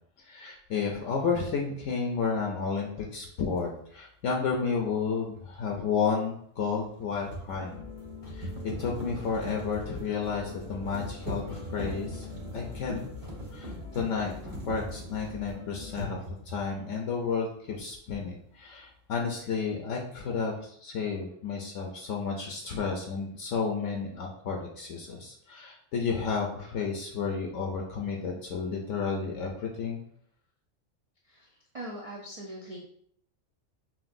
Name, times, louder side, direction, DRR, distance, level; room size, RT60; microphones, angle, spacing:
voice 1, 0.2-7.8 8.3-8.5 8.8-12.3 12.5-13.0 13.5-16.2 16.5-30.0, left 5 dB, 70° left, 1 dB, 0.9 m, -32 dB
sound 1, 3.6-3.7 6.8-15.6 15.9-16.7, equal, 85° right, 1.7 m, -40 dB
sound 2, 7.5-16.1, left 2 dB, 35° left, 0.7 m, -45 dB
voice 2, 31.2-32.8, right 1 dB, 65° right, -2 dB, 0.3 m, -41 dB
5.7 x 2.5 x 2.5 m, 0.65 s
omnidirectional pair, 1.4 m